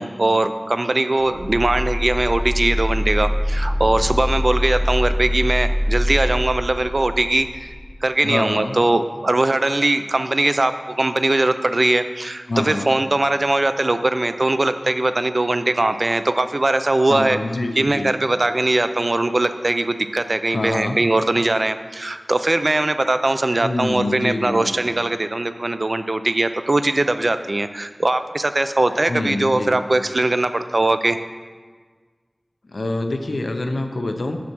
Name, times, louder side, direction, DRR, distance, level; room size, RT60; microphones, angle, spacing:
voice 1, 0.0-7.7 8.0-17.4 17.8-31.2, right 2 dB, 50° right, 10 dB, 0.4 m, -20 dB
sound 1, 1.2-7.9, equal, 5° right, 1.6 m, -23 dB
voice 2, 8.2-8.8 12.5-12.9 17.1-18.1 20.5-21.0 23.6-25.0 29.1-29.8 32.7-34.4, left 2 dB, 80° left, 5 dB, 0.7 m, -26 dB
8.5 x 5.9 x 6.1 m, 1.5 s
wide cardioid pair, 60°, 0 cm